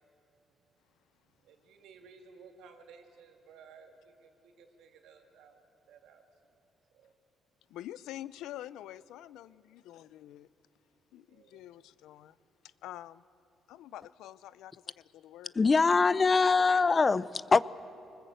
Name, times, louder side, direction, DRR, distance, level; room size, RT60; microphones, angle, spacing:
voice 1, 1.4-6.6 6.9-7.1 11.3-11.7 16.3-16.8, right 5 dB, 85° right, 4 dB, 2.4 m, -56 dB
voice 2, 7.7-10.5 11.1-12.4 12.6-13.2 13.7-15.5, left 13 dB, 90° left, 17 dB, 0.5 m, -46 dB
voice 3, 15.5-17.6, left 4 dB, 30° left, 18 dB, 0.5 m, -23 dB
24.0 x 20.5 x 7.9 m, 2.7 s
cardioid pair, 90°, 0 cm